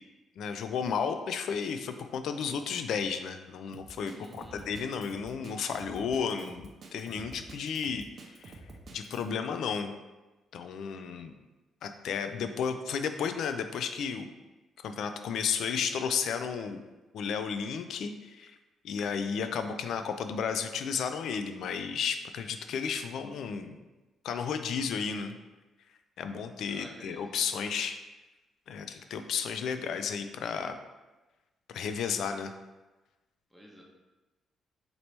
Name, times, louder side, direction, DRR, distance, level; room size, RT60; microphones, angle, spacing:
voice 1, 0.4-8.0 8.4-8.6 8.9-9.9 10.5-11.3 11.8-14.3 14.8-16.8 17.1-18.6 18.8-23.8 24.2-25.4 26.2-28.0 28.7-30.8 31.7-32.5, left 6 dB, 70° left, 8 dB, 0.3 m, -33 dB
Drum kit, 3.7-9.3, right 2 dB, 50° right, 0.6 m, -49 dB
voice 2, 4.1-4.7 26.7-27.7 33.5-33.8, equal, ahead, -2 dB, 0.8 m, -51 dB
4.0 x 3.0 x 3.3 m, 1.1 s
cardioid pair, 90°, 0 cm